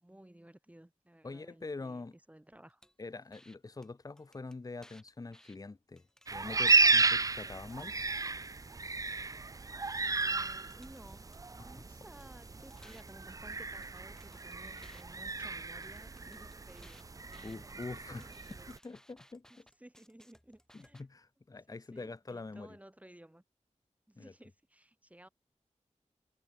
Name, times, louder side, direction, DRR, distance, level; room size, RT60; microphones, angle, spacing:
voice 1, 0.0-2.8 7.4-7.6 10.0-17.8 18.1-18.7 19.5-21.1 21.7-23.4 24.1-25.3, right 1 dB, 10° right, 7.6 m, -57 dB
voice 2, 1.2-2.1 3.0-6.0 6.3-7.9 11.6-11.8 17.4-19.6 20.7-22.8 24.2-24.3, left 3 dB, 30° left, 0.7 m, -45 dB
sound 1, 2.8-2.9 3.3-3.6 3.8-3.9 4.2-5.6 6.0-6.9 7.3-8.5 9.8-9.9 10.2-11.9 12.2-15.0 15.3-21.0, equal, 5° left, 3.4 m, -62 dB
sound 2, 6.3-18.8, right 3 dB, 25° right, 0.4 m, -33 dB
wide cardioid pair, 105°, 13 cm